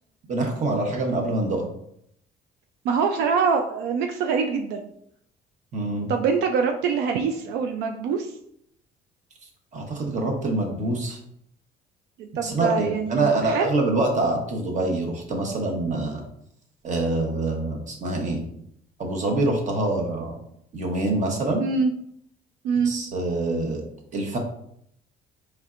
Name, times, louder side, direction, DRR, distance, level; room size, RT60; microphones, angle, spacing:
voice 1, 0.3-1.7 5.7-6.1 9.7-11.2 12.4-16.2 16.8-18.4 19.0-20.3 20.7-21.6 22.8-23.8 24.1-24.4, right 2 dB, 45° right, 1 dB, 1.0 m, -25 dB
voice 2, 2.8-4.9 6.1-8.4 12.2-13.7 21.6-21.9 22.6-22.9, right 5 dB, 90° right, 4 dB, 0.4 m, -24 dB
4.2 x 3.3 x 2.5 m, 0.73 s
cardioid pair, 110°, 17 cm